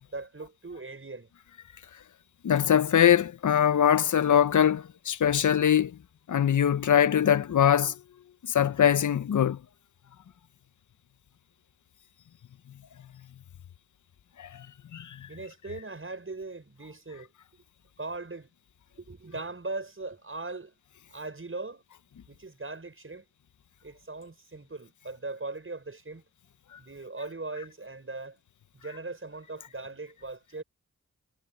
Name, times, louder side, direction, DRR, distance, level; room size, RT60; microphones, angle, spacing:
voice 1, 0.1-1.3 15.3-17.3 18.0-18.5 19.0-20.7 21.1-21.8 22.3-23.2 23.8-26.2 26.8-28.4 28.7-30.6, right 3 dB, 40° right, 6.3 m, -39 dB
voice 2, 2.4-6.0 6.3-8.0 8.4-9.6 14.4-14.7 14.9-15.3, left 9 dB, 65° left, 0.8 m, -22 dB
cardioid pair, 40°, 33 cm